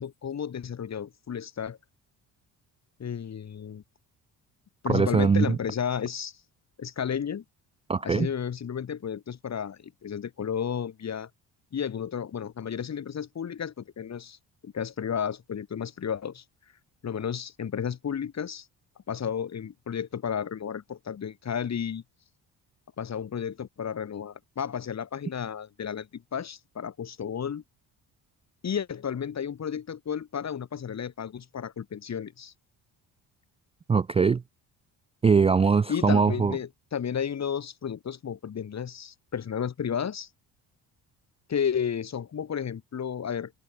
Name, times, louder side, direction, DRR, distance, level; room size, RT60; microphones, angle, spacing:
voice 1, 0.0-1.8 3.0-3.8 4.8-6.4 6.8-7.4 8.0-11.3 11.7-14.4 14.6-16.4 17.0-18.7 19.1-22.0 23.0-27.6 28.6-32.5 35.9-40.3 41.5-43.5, left 8 dB, 35° left, 1.3 m, -32 dB
voice 2, 4.9-5.6 7.9-8.3 33.9-34.4 35.2-36.6, right 5 dB, 15° right, 0.3 m, -22 dB
supercardioid pair, 75°, 44 cm